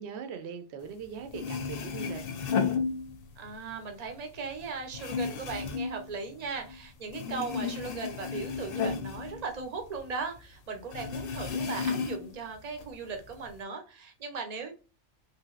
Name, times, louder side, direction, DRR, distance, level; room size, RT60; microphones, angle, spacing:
voice 1, 0.0-2.2, right 6 dB, 70° right, 0.8 m, -40 dB
sound 1, 1.0-1.1 1.3-3.5 3.9-6.8 7.1-10.1 10.4-10.5 10.9-12.4 12.8-13.5, left 5 dB, 60° left, 0.7 m, -33 dB
voice 2, 3.4-14.7, right 4 dB, 45° right, 0.6 m, -38 dB
3.2 x 2.7 x 2.3 m
omnidirectional pair, 1.2 m